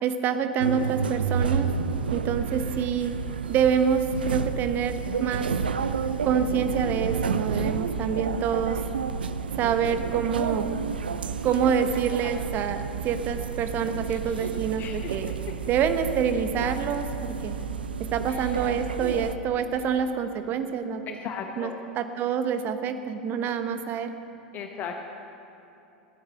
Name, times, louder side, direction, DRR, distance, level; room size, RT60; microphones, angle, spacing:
voice 1, 0.0-1.7 2.1-3.2 3.5-5.5 6.2-8.8 9.5-10.7 11.4-15.3 15.7-17.6 18.0-21.2 21.6-24.1, right 7 dB, 35° right, 9 dB, 1.1 m, -27 dB
sound 1, 0.6-19.4, right 6 dB, 75° right, 0.6 m, -30 dB
voice 2, 14.1-14.5 14.8-15.2 18.3-18.5 21.1-21.8 24.5-25.1, left 6 dB, 35° left, 3 dB, 1.1 m, -37 dB
16.0 x 10.0 x 6.7 m, 2.8 s
figure-of-eight pair, 90°, 5 cm